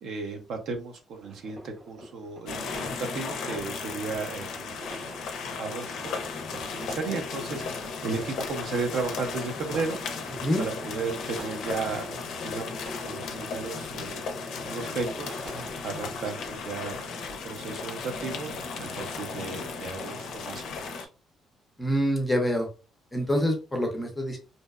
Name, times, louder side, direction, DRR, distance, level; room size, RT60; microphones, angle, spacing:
voice 1, 0.0-5.0 5.5-6.1 6.5-10.0 10.6-14.3 14.7-15.4 15.8-17.2 17.4-21.1, right 4 dB, 60° right, 4 dB, 0.6 m, -35 dB
sound 1, 1.1-16.2, right 1 dB, 90° right, 1.3 m, -48 dB
sound 2, 2.5-21.0, left 4 dB, 65° left, 0.4 m, -35 dB
voice 2, 21.8-22.7 23.1-24.4, equal, 5° left, 2 dB, 0.5 m, -26 dB
2.6 x 2.0 x 2.3 m, 0.33 s
cardioid pair, 180°, 0 cm